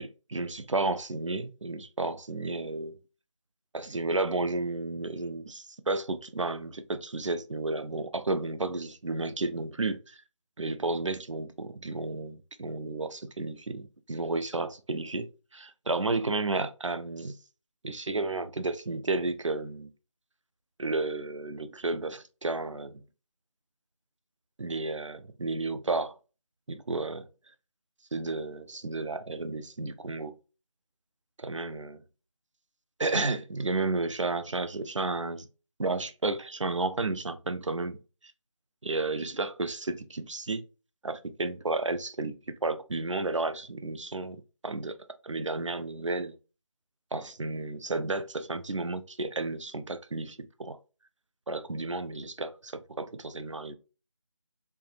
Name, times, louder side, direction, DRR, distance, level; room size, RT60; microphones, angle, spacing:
voice 1, 0.0-3.0 3.7-10.2 10.6-15.3 15.5-17.3 17.8-19.9 20.8-23.0 24.6-26.2 26.7-27.3 28.1-30.4 31.4-32.0 33.0-35.5 35.8-38.0 38.8-40.6 41.0-44.4 44.6-44.9 45.2-46.4 47.1-50.8 51.5-53.7, right 3 dB, 65° right, 0.6 m, -32 dB
4.7 x 2.9 x 2.5 m
figure-of-eight pair, 175°, 17 cm